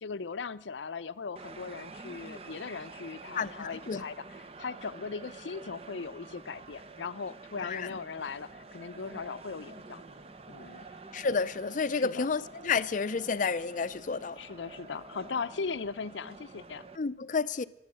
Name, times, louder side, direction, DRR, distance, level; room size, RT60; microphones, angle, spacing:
voice 1, 0.0-4.2 4.6-10.0 10.5-10.9 11.9-12.3 14.4-16.9, left 5 dB, 90° left, 0.6 m, -38 dB
sound 1, 1.4-17.0, right 3 dB, 35° right, 0.7 m, -48 dB
voice 2, 3.3-4.0 7.6-7.8 11.1-14.4 17.0-17.7, left 5 dB, 45° left, 0.5 m, -30 dB
15.0 x 12.5 x 7.6 m
head